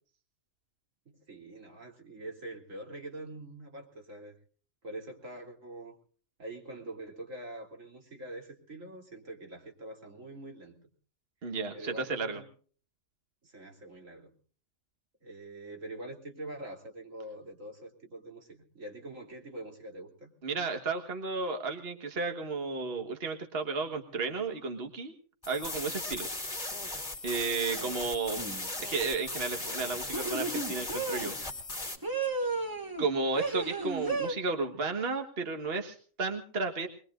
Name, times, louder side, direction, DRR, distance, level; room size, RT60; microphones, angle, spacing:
voice 1, 1.1-4.4 4.8-6.0 6.4-10.9 11.4-12.5 13.4-14.3 15.2-20.3 27.7-27.9 34.1-34.3, right 1 dB, 80° right, 2 dB, 3.4 m, -45 dB
voice 2, 11.4-12.4 20.4-25.1 25.5-26.3 27.2-28.4 28.8-31.4 33.0-36.9, right 4 dB, 50° right, 5 dB, 1.7 m, -33 dB
sound 1, 25.4-32.0, left 2 dB, 25° left, 2.4 m, -37 dB
sound 2, 28.4-28.7 30.1-31.3 32.0-33.1 33.4-34.3, right 3 dB, 15° right, 1.6 m, -33 dB
23.0 x 21.5 x 2.5 m, 0.43 s
omnidirectional pair, 1.3 m